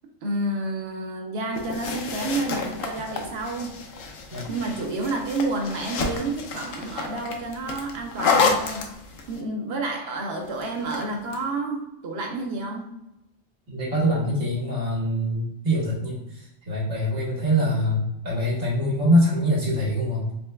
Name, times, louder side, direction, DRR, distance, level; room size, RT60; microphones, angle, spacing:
voice 1, 0.2-3.8 4.3-8.9 9.3-13.0, right 2 dB, 55° right, 2 dB, 0.9 m, -30 dB
sound 1, 1.5-9.4 10.6-11.4, left 4 dB, 75° left, 1.0 m, -29 dB
voice 2, 13.7-20.3, equal, 80° right, -6 dB, 1.8 m, -24 dB
4.4 x 3.2 x 2.3 m, 0.86 s
omnidirectional pair, 1.3 m